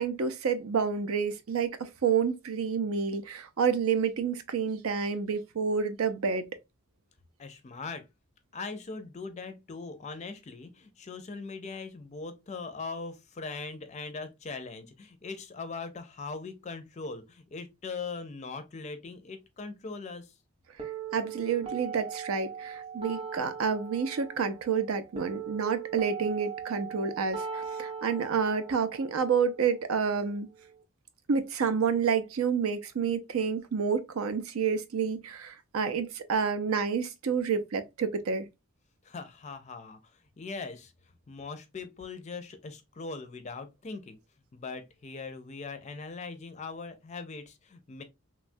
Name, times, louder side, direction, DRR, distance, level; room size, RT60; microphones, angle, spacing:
voice 1, 0.0-6.5 21.1-30.5 31.3-38.5, right 6 dB, 80° right, 0.5 m, -29 dB
voice 2, 7.4-8.1 8.5-20.3 39.0-40.0 40.4-40.9 41.3-44.2 44.5-48.0, left 4 dB, 35° left, 0.4 m, -40 dB
sound 1, 20.8-30.8, right 7 dB, 25° right, 0.6 m, -40 dB
3.1 x 2.2 x 2.5 m
head